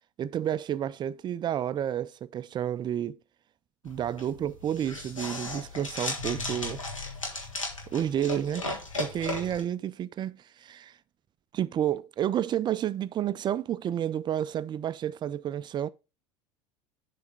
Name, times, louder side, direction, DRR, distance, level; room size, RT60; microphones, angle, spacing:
voice 1, 0.2-3.2 3.8-6.8 7.9-8.7 9.0-10.9 11.5-15.9, right 10 dB, 25° right, 0.4 m, -30 dB
sound 1, 3.9-9.6, left 2 dB, 90° left, 1.5 m, -36 dB
7.0 x 3.4 x 5.7 m
figure-of-eight pair, 70°, 16 cm